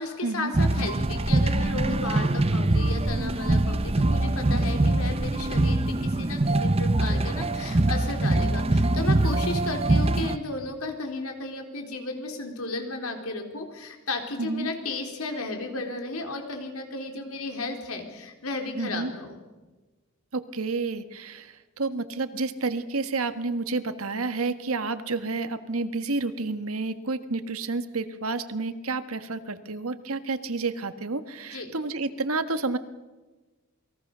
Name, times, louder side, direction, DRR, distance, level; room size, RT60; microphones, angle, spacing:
voice 1, 0.0-19.4 31.5-31.7, left 2 dB, 85° left, 4 dB, 4.3 m, -34 dB
sound 1, 0.5-10.4, right 2 dB, 30° right, 0.7 m, -23 dB
voice 2, 14.4-14.7 18.8-19.1 20.3-32.8, right 3 dB, 80° right, 10 dB, 1.5 m, -30 dB
28.0 x 21.0 x 6.8 m, 1.2 s
head